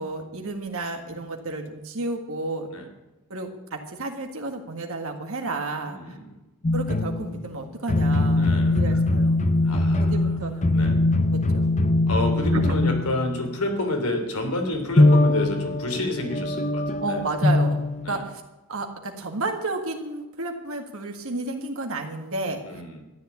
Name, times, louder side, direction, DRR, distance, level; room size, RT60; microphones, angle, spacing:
voice 1, 0.0-2.7 3.3-6.2 6.7-9.4 10.0-10.8 11.3-11.8 12.5-12.9 17.0-18.2 18.7-22.8, right 2 dB, 65° right, 3 dB, 1.8 m, -32 dB
voice 2, 5.8-6.4 8.3-9.0 9.6-10.4 10.7-11.1 12.1-17.2 18.0-18.2 22.6-23.0, left 1 dB, 80° left, 4 dB, 3.2 m, -30 dB
sound 1, 6.6-7.5 7.9-13.6 15.0-18.1, left 2 dB, 35° left, 0.8 m, -22 dB
13.5 x 10.5 x 8.3 m, 1.0 s
head